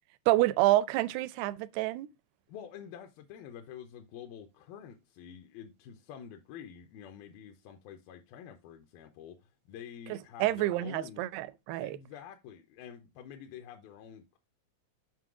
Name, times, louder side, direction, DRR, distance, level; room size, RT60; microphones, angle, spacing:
voice 1, 0.3-2.1 10.1-12.0, right 16 dB, 85° right, 2.5 m, -28 dB
voice 2, 2.5-11.2 11.8-14.4, left 8 dB, 80° left, 2.4 m, -48 dB
7.6 x 5.4 x 3.6 m
omnidirectional pair, 4.6 m